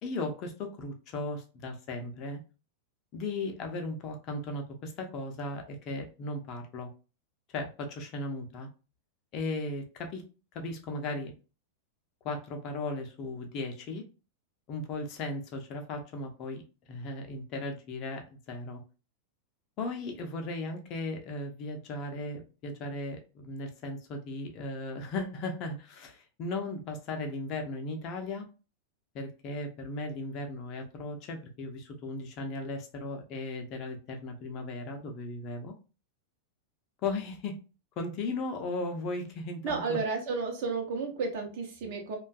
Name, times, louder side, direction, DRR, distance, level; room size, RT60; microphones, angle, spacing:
voice 1, 0.0-2.4 3.1-6.9 7.5-8.7 9.3-10.2 10.5-11.3 12.2-14.0 14.7-16.6 16.9-18.8 19.8-28.5 29.1-35.7 37.0-37.6 38.0-40.0, left 2 dB, 35° left, 4 dB, 0.6 m, -36 dB
voice 2, 39.6-42.2, right 4 dB, 50° right, 2 dB, 0.8 m, -32 dB
2.5 x 2.3 x 2.3 m, 0.33 s
figure-of-eight pair, 90°, 0 cm